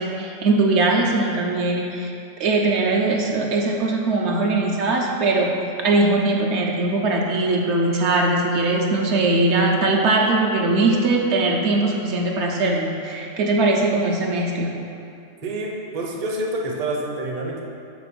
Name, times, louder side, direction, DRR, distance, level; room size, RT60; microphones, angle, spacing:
voice 1, 0.0-5.5 5.8-14.7, right 2 dB, 65° right, 0 dB, 0.9 m, -20 dB
voice 2, 15.4-17.6, right 1 dB, 40° right, -1 dB, 0.6 m, -27 dB
5.8 x 3.8 x 6.0 m, 2.5 s
omnidirectional pair, 1.3 m